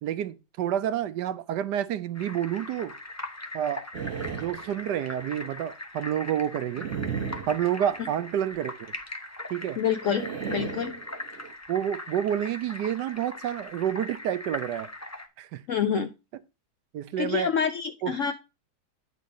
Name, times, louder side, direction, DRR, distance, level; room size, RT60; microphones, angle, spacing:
voice 1, 0.0-2.9 3.5-3.8 4.3-6.9 7.5-8.9 9.5-9.8 11.7-14.9 15.4-15.6 16.9-17.5 18.0-18.1, right 10 dB, 75° right, 1.2 m, -29 dB
sound 1, 2.2-15.3, left 2 dB, 20° left, 0.4 m, -40 dB
sound 2, 3.9-5.3 6.7-8.3 10.0-11.5, right 7 dB, 50° right, 1.2 m, -36 dB
voice 2, 9.8-11.0 15.7-16.1 17.2-18.3, left 8 dB, 65° left, 0.8 m, -27 dB
9.3 x 4.3 x 5.2 m
omnidirectional pair, 1.9 m